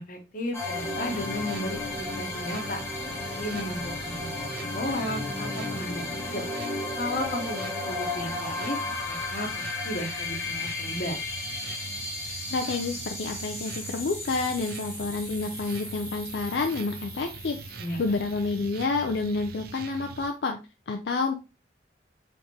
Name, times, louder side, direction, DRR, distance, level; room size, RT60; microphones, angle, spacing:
voice 1, 0.0-2.8 3.4-6.5 7.0-8.8 9.1-11.2 17.8-18.3, left 1 dB, 50° left, 4 dB, 1.0 m, -34 dB
sound 1, 0.5-19.0, left 3 dB, 15° left, 1.1 m, -35 dB
sound 2, 0.6-20.3, right 5 dB, 55° right, 0.4 m, -43 dB
voice 2, 12.5-20.6 20.9-21.3, left 3 dB, 70° left, 4 dB, 0.4 m, -29 dB
4.5 x 3.6 x 2.8 m, 0.29 s
head